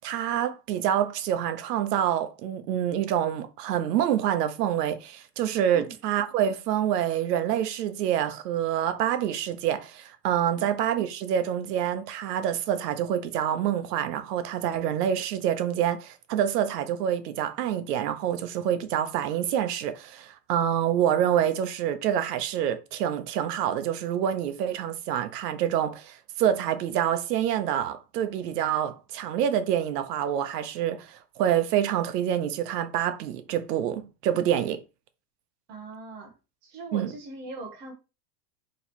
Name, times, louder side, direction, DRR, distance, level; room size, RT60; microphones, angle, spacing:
voice 1, 0.0-34.8 36.9-37.1, right 10 dB, 70° right, 0.8 m, -27 dB
voice 2, 35.7-36.3 36.6-37.9, right 3 dB, 20° right, 0.7 m, -40 dB
3.1 x 2.9 x 4.1 m
supercardioid pair, 180°, 50 cm